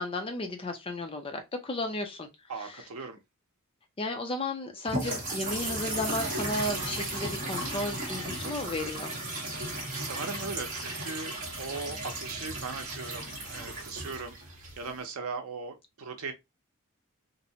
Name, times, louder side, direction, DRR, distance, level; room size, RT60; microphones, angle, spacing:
voice 1, 0.0-2.3 2.6-2.9 4.0-9.1, left 2 dB, 25° left, 0.4 m, -34 dB
voice 2, 2.5-3.2 9.9-14.4 14.8-16.3, right 4 dB, 75° right, 0.6 m, -38 dB
sound 1, 4.9-15.0, right 1 dB, 35° right, 0.9 m, -35 dB
2.6 x 2.1 x 2.6 m
head